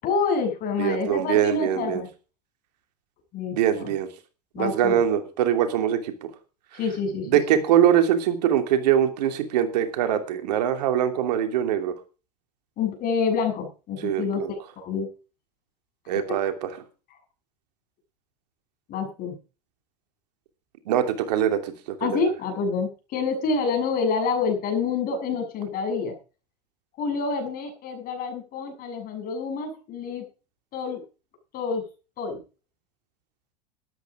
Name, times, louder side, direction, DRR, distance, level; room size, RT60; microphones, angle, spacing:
voice 1, 0.0-2.1 3.3-3.9 4.5-5.0 6.7-7.6 12.8-15.1 16.1-16.2 18.9-19.4 22.0-26.1 27.0-30.2 30.7-31.0 31.5-31.8 32.2-32.4, left 5 dB, 45° left, 4 dB, 7.2 m, -27 dB
voice 2, 0.8-2.0 3.5-4.1 4.6-6.1 7.3-11.9 14.0-14.5 16.1-16.7 20.9-22.2, right 10 dB, 75° right, 7 dB, 2.9 m, -23 dB
13.0 x 12.0 x 4.9 m, 0.34 s
supercardioid pair, 110°, 21 cm